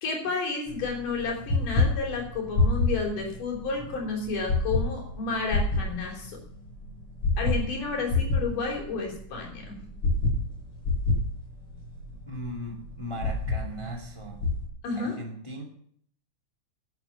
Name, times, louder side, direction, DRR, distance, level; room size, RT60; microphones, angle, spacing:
voice 1, 0.0-6.4 7.4-9.8 14.8-15.1, left 4 dB, 80° left, 0 dB, 5.0 m, -31 dB
sound 1, 0.7-14.7, left 2 dB, 45° left, 6.4 m, -29 dB
voice 2, 12.3-14.4 14.9-15.6, equal, 10° left, 1 dB, 2.0 m, -38 dB
12.0 x 9.2 x 7.0 m, 0.62 s
omnidirectional pair, 3.6 m